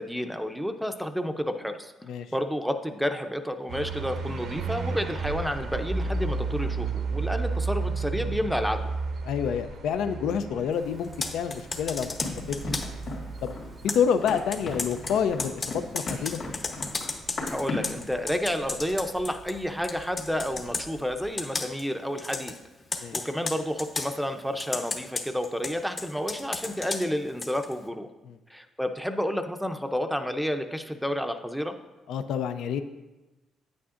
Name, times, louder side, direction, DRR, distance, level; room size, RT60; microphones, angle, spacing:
voice 1, 0.0-1.9 2.3-8.9 17.5-22.5 23.1-28.1 28.5-31.7, equal, ahead, 6 dB, 0.5 m, -30 dB
sound 1, 3.7-21.3, right 4 dB, 80° right, 0.9 m, -34 dB
voice 2, 9.2-12.2 12.5-12.6 13.4-13.6 13.8-16.4 23.0-23.2 28.3-28.4 32.1-32.8, left 7 dB, 80° left, 10 dB, 0.4 m, -28 dB
Computer keyboard, 11.0-13.0 13.9-19.6 19.8-20.9 21.4-21.9 22.2-22.6 22.9-24.1 24.6-27.7, left 3 dB, 40° left, 0.9 m, -34 dB
Run, 12.2-18.0, left 2 dB, 60° left, 2.0 m, -36 dB
9.3 x 8.5 x 2.5 m, 1.1 s
cardioid pair, 90°, 0 cm